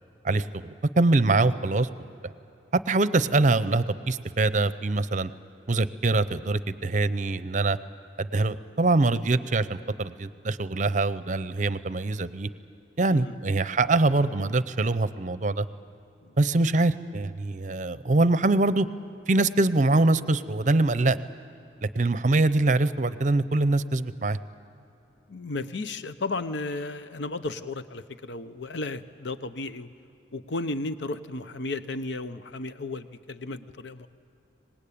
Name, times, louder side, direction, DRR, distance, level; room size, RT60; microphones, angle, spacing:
voice 1, 0.2-1.9 2.2-2.3 2.7-5.3 5.7-7.8 8.2-12.5 13.0-15.7 16.4-18.9 19.3-21.2 21.8-24.4, right 2 dB, 40° right, 14 dB, 0.6 m, -24 dB
voice 2, 25.3-29.9 30.3-34.1, left 2 dB, 75° left, 11 dB, 0.8 m, -34 dB
25.5 x 20.0 x 8.6 m, 2.9 s
head